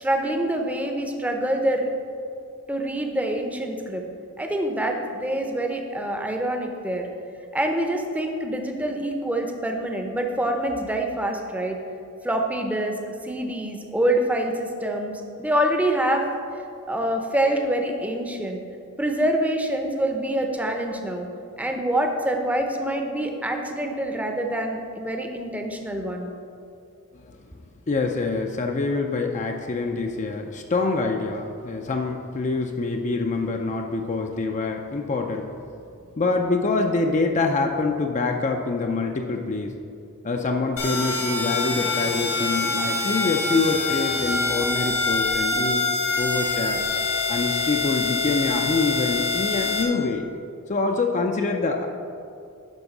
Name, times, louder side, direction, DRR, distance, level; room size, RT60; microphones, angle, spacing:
voice 1, 0.0-1.9 2.7-4.0 4.4-7.1 7.5-11.8 12.2-13.0 13.2-16.3 16.5-16.6 16.9-18.6 19.0-21.3 21.6-26.3, right 1 dB, 5° right, 3 dB, 0.6 m, -26 dB
voice 2, 27.9-35.5 36.2-39.7 40.2-45.9 46.2-46.8 47.3-50.3 50.7-51.9, left 3 dB, 35° left, 3 dB, 0.4 m, -25 dB
sound 1, 40.8-49.8, left 3 dB, 85° left, 1.3 m, -25 dB
10.5 x 3.6 x 6.0 m, 2.5 s
head